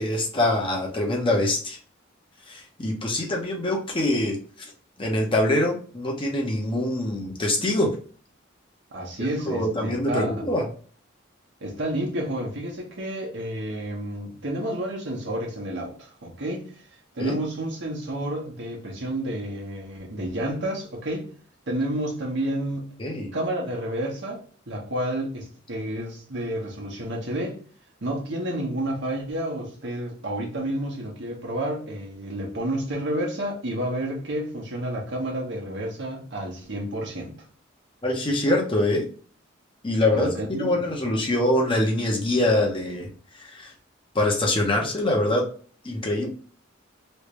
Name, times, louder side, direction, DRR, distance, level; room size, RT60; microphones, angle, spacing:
voice 1, 0.0-1.8 2.5-4.4 5.0-7.9 9.5-10.7 17.2-17.4 23.0-23.3 38.0-39.0 39.8-43.1 43.4-43.7 44.1-45.4 45.8-46.3, left 1 dB, 25° left, 0.9 m, -24 dB
voice 2, 8.9-10.5 11.6-16.7 17.1-21.3 21.7-22.9 23.3-27.6 28.0-37.4 40.1-40.8, right 1 dB, 60° right, 1.1 m, -30 dB
3.2 x 2.7 x 3.1 m
head